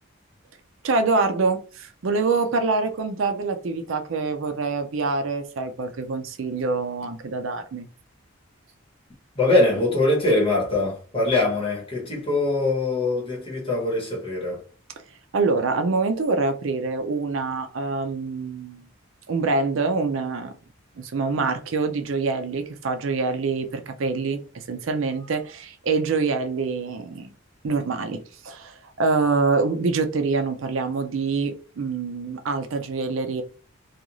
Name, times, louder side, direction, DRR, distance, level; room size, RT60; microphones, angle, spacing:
voice 1, 0.8-7.9 15.3-18.9 19.3-20.5 21.0-27.3 27.6-33.4, right 4 dB, 70° right, 0.4 m, -25 dB
voice 2, 9.3-14.6, left 2 dB, 25° left, 1.1 m, -22 dB
2.5 x 2.3 x 2.9 m
head